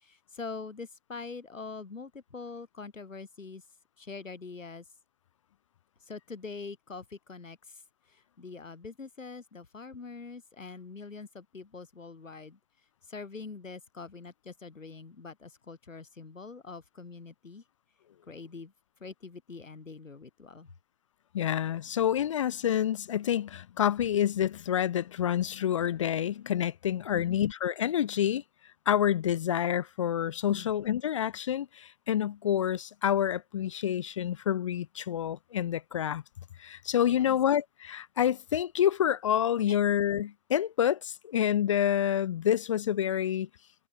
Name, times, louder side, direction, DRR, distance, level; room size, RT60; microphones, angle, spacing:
voice 1, 0.0-3.6 4.0-4.8 6.1-7.8 8.1-12.6 13.1-17.6 18.3-18.7 19.0-20.7 27.1-27.4 30.5-30.7 37.0-37.4 39.7-39.8, left 4 dB, 85° left, 7.4 m, -44 dB
voice 2, 21.3-28.4 28.9-36.2 36.6-43.5, left 10 dB, 25° left, 0.6 m, -28 dB
hypercardioid pair, 145°, 38 cm